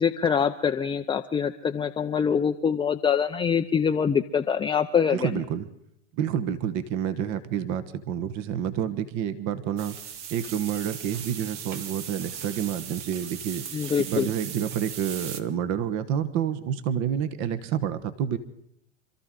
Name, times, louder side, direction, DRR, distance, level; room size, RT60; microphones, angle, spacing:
voice 1, 0.0-5.3 13.7-14.3, left 7 dB, 15° left, 5 dB, 0.5 m, -24 dB
voice 2, 5.1-5.7 6.1-10.0 10.3-13.6 14.0-18.4, right 9 dB, 45° right, 12 dB, 1.2 m, -29 dB
sound 1, 9.8-15.4, right 8 dB, 65° right, 1.6 m, -38 dB
27.0 x 13.5 x 3.8 m, 0.75 s
hypercardioid pair, 100°, 38 cm